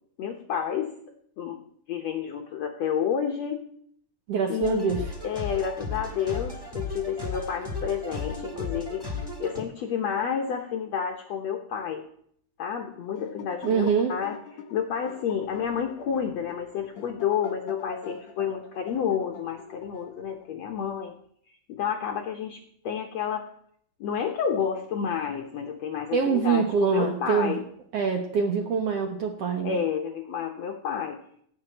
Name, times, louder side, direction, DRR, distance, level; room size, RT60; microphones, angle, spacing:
voice 1, 0.2-0.9 1.4-1.6 1.9-3.7 4.5-5.0 5.2-9.1 9.4-12.0 12.6-21.1 21.7-23.5 24.0-27.6 29.6-31.2, left 7 dB, 80° left, 4 dB, 1.5 m, -30 dB
voice 2, 4.3-5.0 13.6-14.1 26.1-27.6 27.9-29.8, right 6 dB, 85° right, 3 dB, 1.3 m, -25 dB
sound 1, 4.6-9.6, left 3 dB, 15° right, 0.9 m, -35 dB
sound 2, 12.9-20.5, left 6 dB, 60° left, 1.8 m, -45 dB
16.5 x 5.6 x 8.8 m, 0.66 s
omnidirectional pair, 4.5 m